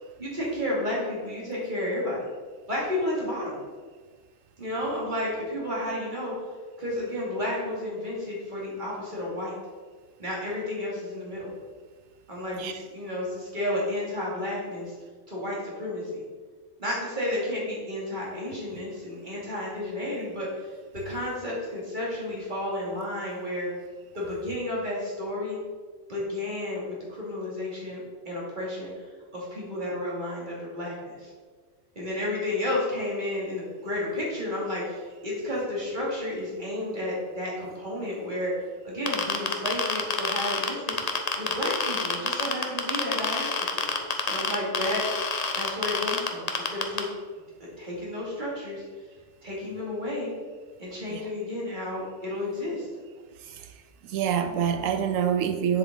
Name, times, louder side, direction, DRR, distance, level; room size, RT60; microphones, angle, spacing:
voice 1, 0.2-2.2 2.7-3.6 4.6-6.3 6.8-9.5 10.2-11.5 12.3-14.9 15.3-16.2 16.8-20.5 20.9-23.7 24.1-25.6 26.1-28.9 29.3-31.3 32.0-38.5 38.8-40.9 41.4-43.9 44.3-45.0 45.5-47.1 47.8-48.8 49.4-50.3 50.8-52.9, left 1 dB, 40° right, -5 dB, 2.6 m, -32 dB
sound 1, 39.1-47.0, left 5 dB, 40° left, 0.7 m, -27 dB
voice 2, 54.1-55.8, right 8 dB, 85° right, 8 dB, 1.0 m, -26 dB
7.6 x 7.2 x 3.9 m, 1.5 s
omnidirectional pair, 1.3 m